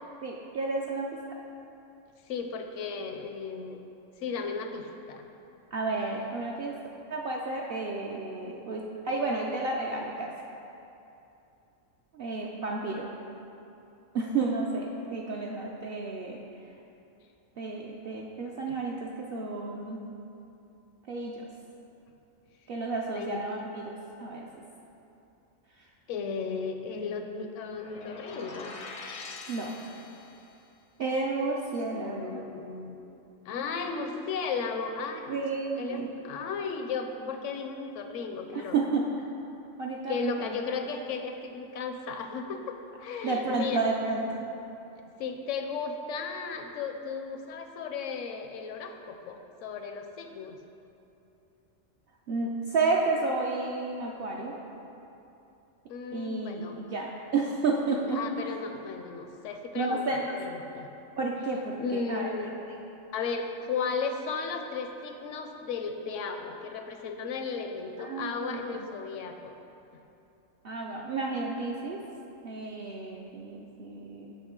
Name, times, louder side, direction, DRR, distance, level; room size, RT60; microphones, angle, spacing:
voice 1, 0.2-1.2 5.7-6.8 7.1-10.3 12.1-13.1 14.1-16.4 17.6-20.0 21.1-21.4 22.7-24.5 25.8-25.9 29.5-29.8 31.0-32.4 35.3-36.1 38.5-39.1 39.8-40.5 43.2-44.4 52.3-54.6 56.1-58.2 59.7-60.3 61.2-62.3 68.0-68.6 70.6-72.0 72.4-74.3, right 3 dB, 60° right, -2 dB, 0.6 m, -31 dB
voice 2, 2.3-3.9 4.2-5.3 23.1-23.4 26.1-28.8 31.9-33.0 33.5-35.4 35.8-38.8 40.1-43.8 45.2-50.6 55.9-56.8 58.1-60.9 61.8-62.6 63.1-69.6, left 5 dB, 75° left, 5 dB, 0.9 m, -35 dB
sound 1, 27.7-30.5, left 4 dB, 50° left, 0.5 m, -44 dB
7.8 x 5.9 x 3.7 m, 2.8 s
omnidirectional pair, 1.3 m